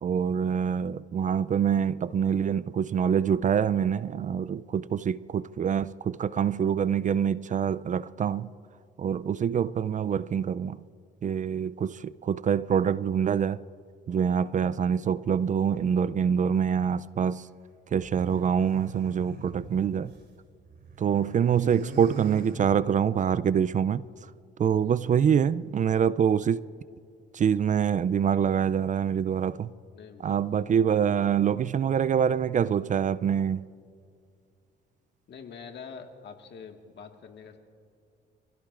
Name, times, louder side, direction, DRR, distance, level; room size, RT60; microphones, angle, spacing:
voice 1, 0.0-8.5 9.0-10.8 11.2-13.6 14.1-17.5 17.9-20.1 21.0-24.0 24.6-26.6 27.3-29.7 30.2-33.6, right 8 dB, 40° right, 0.4 m, -25 dB
sound 1, 17.9-20.3 20.6-23.2, right 3 dB, 60° right, 3.1 m, -43 dB
voice 2, 29.9-31.0 35.3-37.6, left 6 dB, 60° left, 1.7 m, -46 dB
26.5 x 16.0 x 2.5 m
cardioid pair, 90°, 20 cm